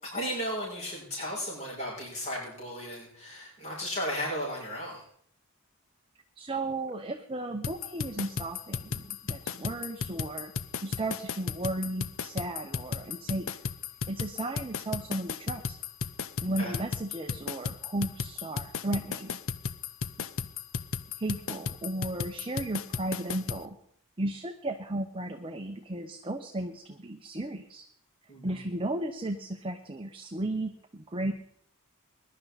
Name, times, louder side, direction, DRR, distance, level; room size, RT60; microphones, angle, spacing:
voice 1, 0.0-5.0 16.6-16.7 28.3-28.6, equal, 30° left, -6 dB, 6.5 m, -35 dB
voice 2, 6.4-10.5 10.8-13.6 14.1-15.8 16.4-19.4 21.2-23.8 24.2-27.9 28.4-31.3, right 1 dB, 25° right, 4 dB, 0.8 m, -34 dB
sound 1, 7.6-23.6, left 5 dB, 65° left, 0.6 m, -35 dB
21.0 x 11.5 x 4.1 m, 0.66 s
head